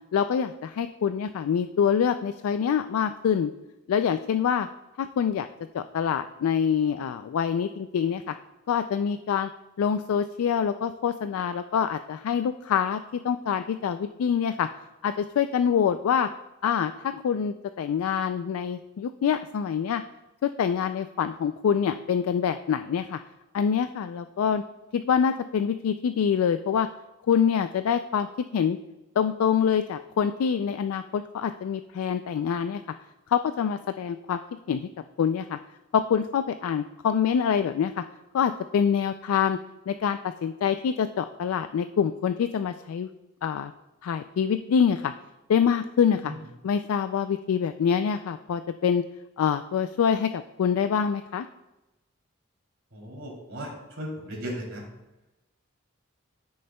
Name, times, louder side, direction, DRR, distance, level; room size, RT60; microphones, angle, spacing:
voice 1, 0.1-3.5 3.9-4.7 5.0-5.5 5.7-8.3 8.7-9.5 9.8-14.7 15.0-16.3 16.6-20.0 20.4-23.2 23.5-24.6 24.9-26.9 27.3-28.3 28.5-28.8 29.2-32.8 33.3-34.4 34.7-34.9 35.2-35.6 35.9-38.0 38.3-39.6 39.9-43.1 43.4-43.7 44.0-45.1 45.5-46.3 46.6-49.0 49.4-51.5, left 7 dB, 80° left, 10 dB, 0.3 m, -25 dB
voice 2, 52.9-53.7 54.0-54.8, equal, 60° right, -2 dB, 2.9 m, -36 dB
13.0 x 6.4 x 2.2 m, 0.99 s
head